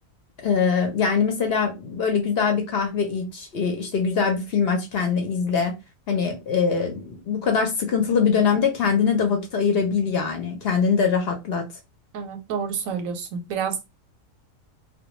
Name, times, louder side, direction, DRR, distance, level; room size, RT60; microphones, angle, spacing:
voice 1, 0.4-5.7 6.1-11.6, left 6 dB, 60° left, 0.7 m, -23 dB
voice 2, 12.1-13.9, right 6 dB, 90° right, 1.0 m, -29 dB
2.2 x 2.1 x 2.9 m
omnidirectional pair, 1.4 m